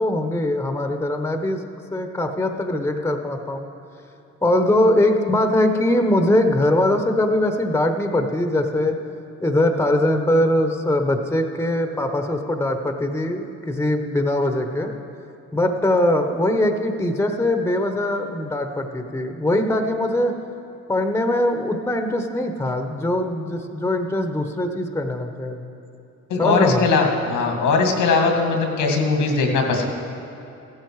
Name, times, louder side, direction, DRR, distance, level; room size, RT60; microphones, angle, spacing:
voice 1, 0.0-1.6 1.9-3.7 4.4-8.9 9.4-14.9 15.5-20.3 20.9-25.6 26.4-26.9, left 1 dB, 10° left, 5 dB, 1.0 m, -21 dB
voice 2, 26.3-29.8, left 4 dB, 85° left, 2 dB, 2.2 m, -20 dB
15.0 x 12.0 x 4.8 m, 2.9 s
cardioid pair, 90°, 30 cm